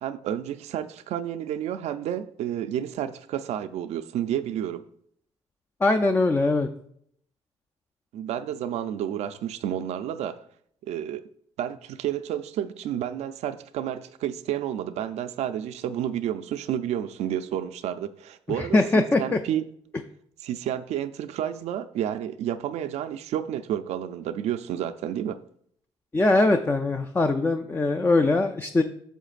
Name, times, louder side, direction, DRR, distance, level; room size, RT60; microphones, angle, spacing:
voice 1, 0.0-4.9 8.1-10.4 10.8-11.2 11.6-19.6 20.4-25.4, right 10 dB, 70° right, 0.4 m, -30 dB
voice 2, 5.8-6.7 18.6-19.4 26.1-28.8, left 2 dB, 15° left, 0.4 m, -22 dB
9.0 x 6.5 x 2.5 m
cardioid pair, 100°, 12 cm